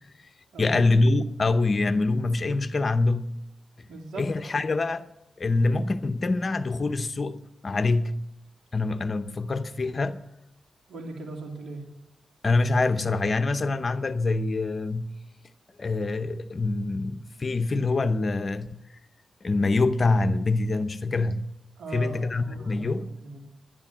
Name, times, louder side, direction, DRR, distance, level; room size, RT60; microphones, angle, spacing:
voice 1, 0.6-3.3 4.2-5.1 5.4-8.3 8.7-10.2 12.4-15.2 15.8-18.8 19.4-21.5 21.9-23.2, left 3 dB, 45° left, 0.8 m, -25 dB
voice 2, 3.9-4.7 10.9-11.9 21.8-23.4, right 3 dB, 80° right, 3.0 m, -39 dB
11.5 x 11.0 x 7.3 m
cardioid pair, 60°, 0 cm